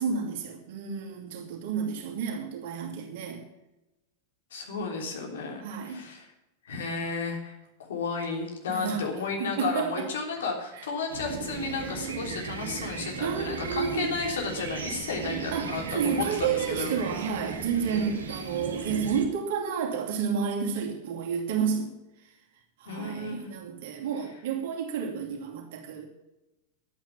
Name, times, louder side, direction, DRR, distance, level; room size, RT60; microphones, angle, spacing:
voice 1, 0.0-3.4 5.6-6.0 8.7-9.0 9.4-10.1 10.8-10.9 13.2-14.1 15.5-21.9 22.8-26.1, right 6 dB, 55° right, 2.6 m, -30 dB
voice 2, 4.5-6.3 6.7-7.6 7.9-16.9 22.9-23.5, left 4 dB, 60° left, 3.4 m, -33 dB
sound 1, 11.1-19.3, right 5 dB, 70° right, 2.2 m, -36 dB
11.0 x 9.0 x 7.1 m
figure-of-eight pair, 90°, 0 cm